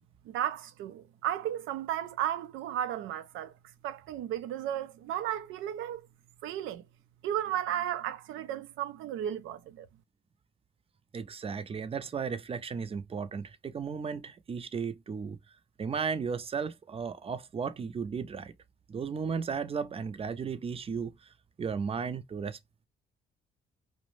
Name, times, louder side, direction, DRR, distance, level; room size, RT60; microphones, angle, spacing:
voice 1, 0.3-3.5 3.8-6.0 6.4-6.8 7.2-9.9, right 11 dB, 90° right, 0.4 m, -34 dB
voice 2, 11.1-15.4 15.8-18.5 18.9-22.6, right 6 dB, 30° right, 0.4 m, -35 dB
2.5 x 2.1 x 3.0 m
cardioid pair, 90°, 20 cm